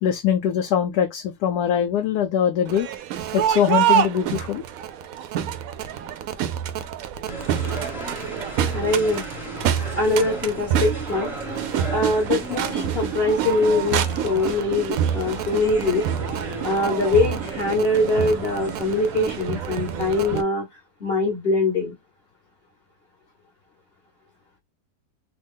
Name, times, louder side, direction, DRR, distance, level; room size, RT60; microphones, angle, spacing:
voice 1, 0.0-2.9 3.3-4.6, left 9 dB, 75° left, 1.1 m, -22 dB
Crowd, 2.7-20.4, right 9 dB, 70° right, 0.8 m, -27 dB
sound 1, 7.3-20.4, right 2 dB, ahead, 0.7 m, -35 dB
voice 2, 8.7-9.2 9.9-11.3 11.9-16.0 16.6-20.6 21.0-21.9, left 2 dB, 40° left, 1.2 m, -22 dB
3.5 x 2.3 x 3.5 m
omnidirectional pair, 1.8 m